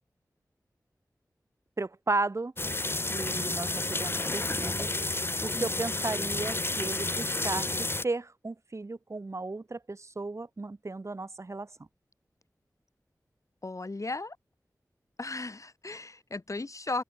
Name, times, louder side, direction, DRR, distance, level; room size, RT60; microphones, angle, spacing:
voice 1, 1.8-2.5 3.0-4.9 5.4-7.7 8.0-11.7, right 3 dB, 45° right, 1.0 m, -34 dB
sound 1, 2.6-8.0, left 2 dB, 35° left, 1.2 m, -31 dB
voice 2, 13.6-14.4 15.2-17.0, left 3 dB, 50° left, 3.9 m, -36 dB
open air
cardioid pair, 45°, 7 cm